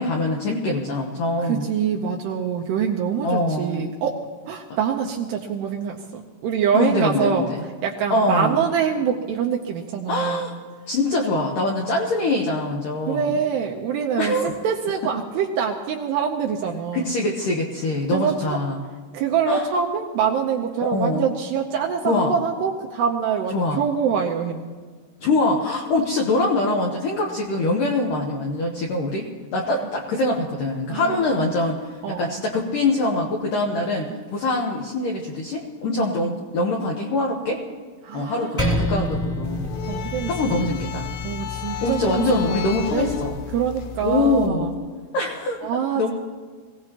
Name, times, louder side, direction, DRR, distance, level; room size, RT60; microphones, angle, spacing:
voice 1, 0.0-1.7 3.2-3.9 6.7-7.6 8.1-8.7 10.1-10.5 10.9-13.4 14.2-14.6 16.9-18.8 19.5-19.7 20.9-21.3 22.1-22.3 23.5-23.8 25.2-29.3 29.5-37.6 38.1-39.8 40.3-41.1 41.8-43.4 44.0-44.7 45.1-45.7 46.0-46.1, left 2 dB, 70° left, -1 dB, 2.0 m, -24 dB
voice 2, 1.4-4.2 4.5-7.5 7.8-10.5 13.1-17.1 18.1-18.6 19.1-24.6 30.9-31.4 32.0-32.4 34.1-34.2 36.0-36.4 38.0-39.0 39.9-43.1 43.5-44.8 45.6-46.1, right 7 dB, 75° right, 0 dB, 2.6 m, -25 dB
Percussion, 38.6-43.4, left 1 dB, 15° left, 1.5 m, -29 dB
sound 1, 39.4-44.5, left 8 dB, 90° left, 3.4 m, -33 dB
23.5 x 17.0 x 3.0 m, 1.5 s
omnidirectional pair, 5.5 m